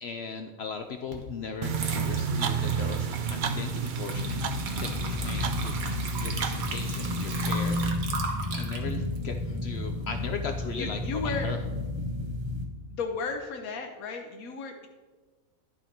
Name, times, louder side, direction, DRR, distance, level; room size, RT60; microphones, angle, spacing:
voice 1, 0.0-8.0 8.5-11.6, left 5 dB, 65° left, 6 dB, 0.7 m, -38 dB
Water / Liquid, 1.1-1.3 1.7-10.2, right 4 dB, 85° right, 1.6 m, -38 dB
sound 1, 1.6-7.9, right 6 dB, 65° right, 0.5 m, -31 dB
sound 2, 4.1-12.6, left 2 dB, 20° right, 1.0 m, -32 dB
voice 2, 9.4-9.8 10.7-11.5 12.9-14.9, left 5 dB, 90° left, 4 dB, 1.2 m, -35 dB
10.5 x 6.2 x 4.4 m, 1.3 s
omnidirectional pair, 1.4 m